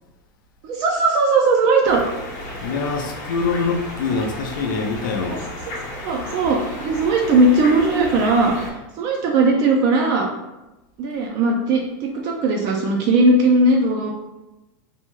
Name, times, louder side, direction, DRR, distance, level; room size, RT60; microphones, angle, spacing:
voice 1, 0.6-2.0 6.0-8.6 9.0-10.3 11.0-14.1, right 2 dB, 40° right, 0 dB, 0.4 m, -18 dB
sound 1, 1.8-8.7, left 1 dB, 45° left, 0.8 m, -33 dB
voice 2, 2.6-5.5, left 4 dB, 90° left, 3 dB, 0.5 m, -24 dB
2.7 x 2.2 x 3.0 m, 1.0 s
supercardioid pair, 160°, 10 cm